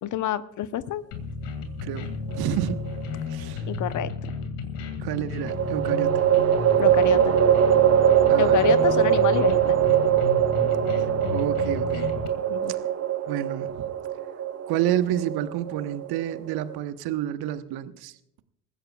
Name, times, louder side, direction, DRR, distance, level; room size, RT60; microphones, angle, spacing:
voice 1, 0.0-1.0 3.7-4.1 6.8-7.4 8.4-9.8 12.5-12.7, left 11 dB, 35° left, 15 dB, 0.9 m, -28 dB
sound 1, 1.1-12.3, left 4 dB, 55° left, 2.3 m, -33 dB
voice 2, 1.8-2.8 3.3-3.7 5.0-6.2 8.3-8.7 11.3-12.2 12.7-12.8 13.3-13.9 14.7-18.1, right 11 dB, 50° right, 11 dB, 1.3 m, -29 dB
sound 2, 2.3-3.2 5.4-16.7, right 10 dB, 30° right, 1.1 m, -22 dB
27.0 x 15.5 x 2.4 m, 0.74 s
figure-of-eight pair, 65°, 50 cm